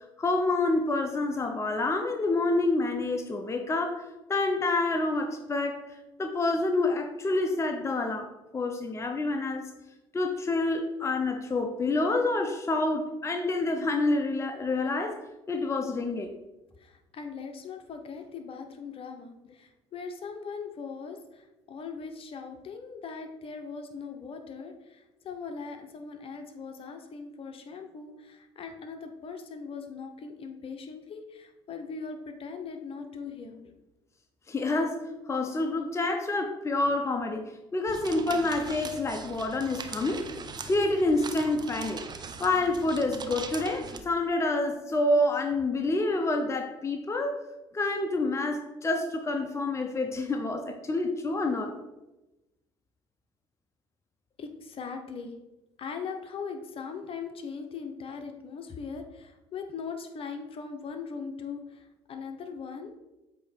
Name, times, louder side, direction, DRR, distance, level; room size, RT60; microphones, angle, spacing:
voice 1, 0.2-5.8 6.2-9.7 10.1-15.2 15.5-16.3 34.5-40.3 40.7-42.0 42.4-47.4 47.7-51.8, left 2 dB, 25° left, 5 dB, 0.7 m, -28 dB
voice 2, 16.8-33.7 54.4-55.4 55.8-63.0, left 5 dB, 50° left, 5 dB, 0.9 m, -40 dB
sound 1, 37.9-44.0, right 5 dB, 35° right, 0.6 m, -41 dB
8.0 x 3.0 x 4.5 m, 0.99 s
supercardioid pair, 75°, 12 cm